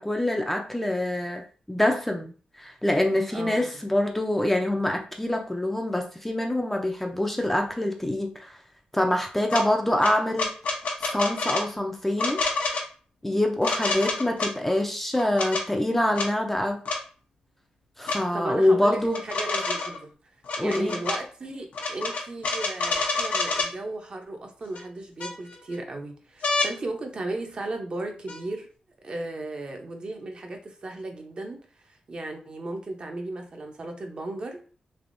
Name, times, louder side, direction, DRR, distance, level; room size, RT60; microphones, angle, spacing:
voice 1, 0.0-1.4 1.7-2.3 2.6-8.5 8.9-10.5 11.0-12.4 13.2-16.8 18.0-19.2 20.6-21.0, left 1 dB, 10° left, 2 dB, 0.4 m, -25 dB
voice 2, 3.3-3.7 18.3-20.1 20.6-28.7 29.0-34.6, right 2 dB, 40° right, 3 dB, 0.7 m, -35 dB
sound 1, 9.5-9.6 10.0-11.7 12.2-12.8 13.6-14.5 15.2-15.6 16.1-16.3 16.8-17.0 18.1-18.2 19.1-20.0 20.4-21.2 21.7-23.7 24.7-24.8 25.2-25.7 26.4-26.7 28.3-28.4, left 3 dB, 85° left, 0.7 m, -28 dB
3.4 x 2.9 x 2.5 m, 0.39 s
wide cardioid pair, 115°, 2 cm